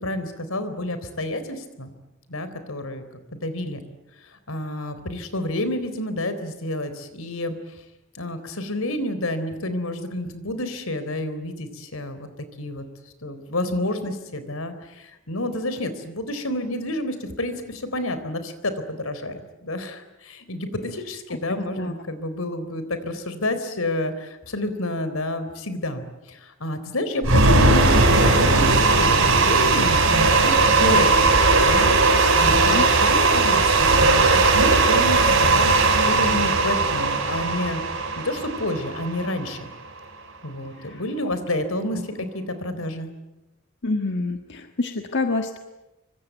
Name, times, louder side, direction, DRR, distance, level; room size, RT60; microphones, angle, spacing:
voice 1, 0.0-1.9 2.3-3.0 3.3-3.8 4.3-7.6 8.1-12.3 12.6-12.8 13.2-37.8 38.2-39.7 40.4-43.1, left 1 dB, 90° left, 11 dB, 3.9 m, -29 dB
voice 2, 21.5-21.9 32.4-32.9 40.8-41.3 41.9-42.0 43.8-45.6, left 3 dB, 60° left, 5 dB, 1.5 m, -28 dB
sound 1, 27.2-39.4, right 3 dB, 75° right, 4.9 m, -18 dB
25.5 x 24.5 x 9.2 m, 0.97 s
head